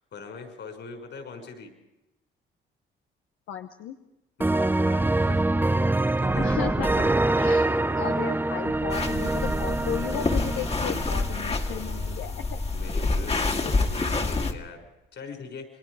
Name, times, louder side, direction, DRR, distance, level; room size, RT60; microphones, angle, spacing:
voice 1, 0.0-1.7 4.4-5.4 6.2-7.1 12.7-15.8, left 4 dB, 65° left, 4 dB, 5.9 m, -41 dB
voice 2, 3.5-4.0 6.3-6.9 7.3-7.7 7.9-12.6 13.6-14.0, left 9 dB, 85° left, 6 dB, 1.2 m, -35 dB
sound 1, 4.4-12.0, right 2 dB, 10° right, 0.7 m, -25 dB
sound 2, 8.9-14.5, left 3 dB, 30° left, 2.1 m, -28 dB
28.5 x 23.0 x 5.0 m, 0.95 s
cardioid pair, 90°, 20 cm